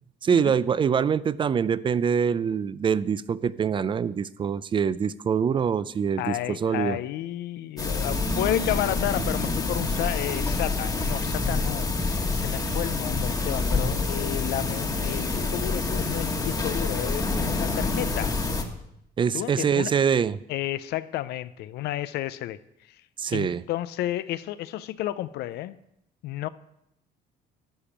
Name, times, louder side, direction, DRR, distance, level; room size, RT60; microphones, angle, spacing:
voice 1, 0.2-7.0 19.2-20.4 23.2-23.6, right 7 dB, 30° right, 18 dB, 0.4 m, -24 dB
voice 2, 6.2-18.4 19.3-19.9 20.5-22.6 23.3-25.8 26.2-26.5, left 14 dB, 80° left, 14 dB, 0.5 m, -31 dB
sound 1, 7.8-18.6, left 3 dB, 20° left, 1.3 m, -27 dB
11.5 x 5.1 x 7.3 m, 0.79 s
cardioid pair, 110°, 17 cm